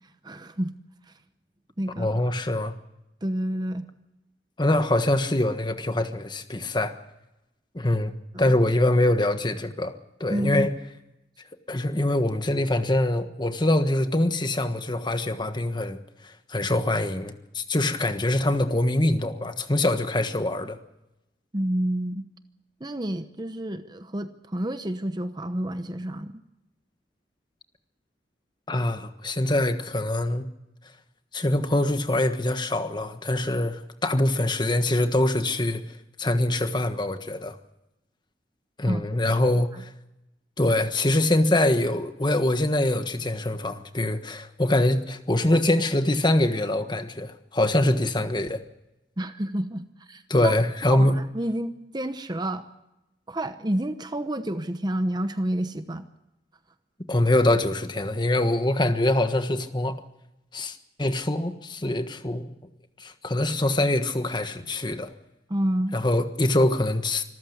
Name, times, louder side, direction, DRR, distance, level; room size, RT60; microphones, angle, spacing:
voice 1, 0.2-0.7 1.8-2.1 3.2-3.9 8.3-8.6 10.3-10.7 21.5-22.2 22.8-26.4 38.9-39.0 39.7-39.8 49.2-50.5 50.9-52.7 53.3-56.1 65.5-66.0, right 1 dB, 25° right, 10 dB, 0.9 m, -29 dB
voice 2, 2.0-2.7 4.6-6.9 7.7-8.1 8.4-9.9 10.2-10.7 11.7-16.0 16.2-20.8 28.7-30.5 31.3-37.6 38.8-39.9 40.6-48.6 50.3-51.2 57.1-60.0 60.5-62.5 63.0-65.1 65.9-67.2, left 1 dB, 25° left, 8 dB, 1.4 m, -24 dB
25.5 x 14.0 x 8.1 m, 0.93 s
head